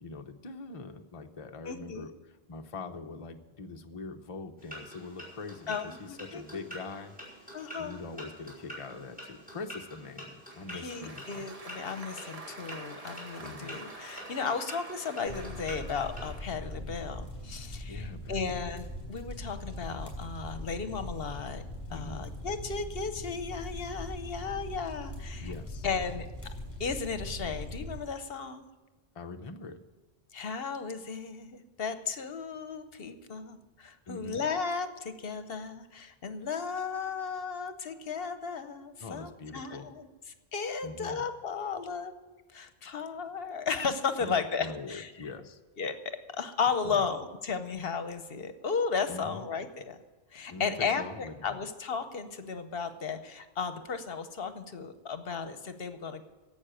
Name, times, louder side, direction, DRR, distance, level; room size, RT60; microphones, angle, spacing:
voice 1, 0.0-7.1 7.8-11.2 13.4-13.7 17.9-18.6 21.9-22.3 25.4-25.8 29.1-29.8 34.1-34.4 39.0-40.0 40.8-41.3 44.2-44.3 44.6-45.6 46.8-47.0 49.1-49.4 50.5-51.6, left 3 dB, 35° left, 5 dB, 0.8 m, -43 dB
voice 2, 1.6-2.1 5.7-6.7 7.5-8.0 10.7-21.6 21.9-25.5 25.8-26.3 26.8-28.7 30.3-40.1 40.5-42.1 42.5-45.3 45.8-50.0 50.3-56.2, left 5 dB, 65° left, 10 dB, 1.0 m, -35 dB
sound 1, 4.6-16.3, equal, 10° right, 5.1 m, -47 dB
Applause, 10.5-16.5, right 2 dB, 35° right, 1.2 m, -47 dB
sound 2, 15.2-28.0, left 1 dB, 10° left, 5.8 m, -41 dB
11.5 x 8.1 x 8.9 m, 1.2 s
omnidirectional pair, 1.1 m